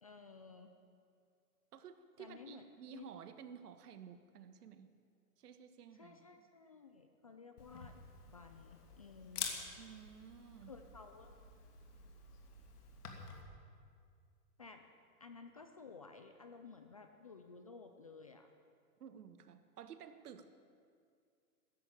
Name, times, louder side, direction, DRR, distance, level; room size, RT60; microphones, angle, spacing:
voice 1, 0.0-0.7 2.2-3.1 5.9-8.0 8.3-9.5 10.7-11.4 14.6-14.8 15.2-18.5, left 4 dB, 25° left, 6 dB, 0.3 m, -55 dB
voice 2, 1.7-4.9 5.4-6.4 9.8-10.8 19.0-20.5, right 7 dB, 75° right, 9 dB, 1.5 m, -53 dB
Camera, 7.6-13.4, left 5 dB, 75° left, 2.7 m, -48 dB
14.0 x 11.0 x 9.1 m, 2.2 s
hypercardioid pair, 150°, 46 cm